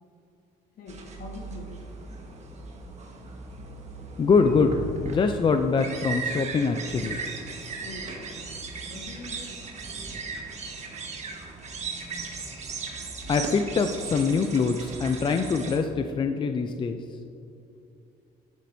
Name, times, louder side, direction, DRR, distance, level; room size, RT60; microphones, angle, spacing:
voice 1, 0.7-1.9 7.8-8.3 8.9-9.6 11.9-12.2, left 3 dB, 55° left, 2 dB, 1.5 m, -43 dB
sound 1, 0.9-15.8, right 4 dB, 40° right, 1.5 m, -37 dB
voice 2, 4.2-7.2 13.3-17.2, left 5 dB, 30° left, 7 dB, 0.4 m, -24 dB
10.5 x 9.7 x 2.7 m, 2.7 s
cardioid pair, 110°, 17 cm